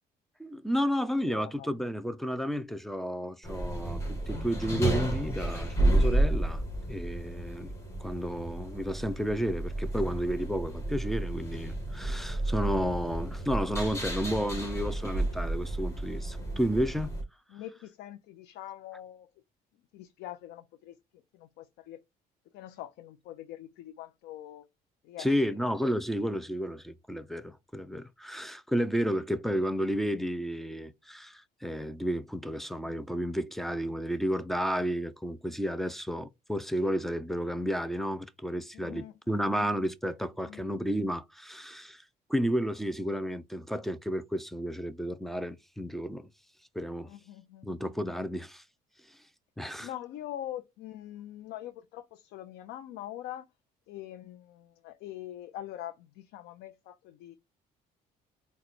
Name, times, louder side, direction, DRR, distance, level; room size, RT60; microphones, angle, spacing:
voice 1, 0.4-4.0 4.3-7.7 8.0-17.1 25.2-42.0 42.3-46.3 46.7-47.1 47.6-48.6 49.6-49.9, equal, ahead, 0.4 m, -32 dB
voice 2, 1.2-1.7 17.5-19.3 19.9-21.0 21.3-22.0 22.5-24.7 25.0-25.6 38.7-39.7 40.4-40.7 47.0-47.7 49.8-53.5 53.9-57.3, left 12 dB, 85° left, 0.6 m, -43 dB
sound 1, 3.4-17.2, right 1 dB, 15° left, 1.7 m, -31 dB
4.0 x 2.3 x 4.2 m
cardioid pair, 110°, 17 cm